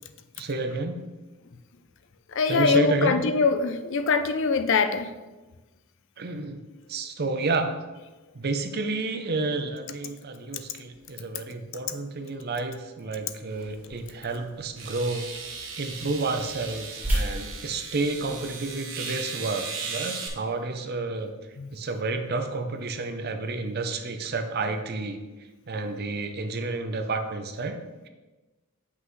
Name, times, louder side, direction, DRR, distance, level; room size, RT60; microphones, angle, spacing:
voice 1, 0.4-1.0 2.5-3.2 6.2-6.6 6.9-7.7 8.3-15.3 15.8-21.3 21.7-25.2 25.7-28.1, right 3 dB, 45° right, 7 dB, 0.6 m, -30 dB
voice 2, 2.3-5.1 13.9-14.1 21.6-21.7, left 4 dB, 60° left, 9 dB, 0.5 m, -23 dB
sound 1, 13.5-18.8, right 1 dB, 10° right, 2.3 m, -35 dB
sound 2, 13.9-14.0 14.8-20.3, right 5 dB, 60° right, 1.3 m, -37 dB
7.8 x 5.6 x 3.2 m, 1.2 s
head